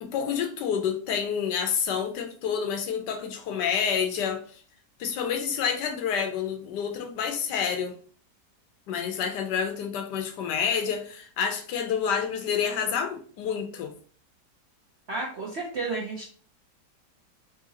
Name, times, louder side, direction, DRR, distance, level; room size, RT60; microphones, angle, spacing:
voice 1, 0.0-4.4 5.0-8.0 8.9-13.9, left 7 dB, 80° left, 1.2 m, -28 dB
voice 2, 15.1-16.3, right 3 dB, 60° right, 0.7 m, -32 dB
3.6 x 2.7 x 2.8 m
omnidirectional pair, 1.9 m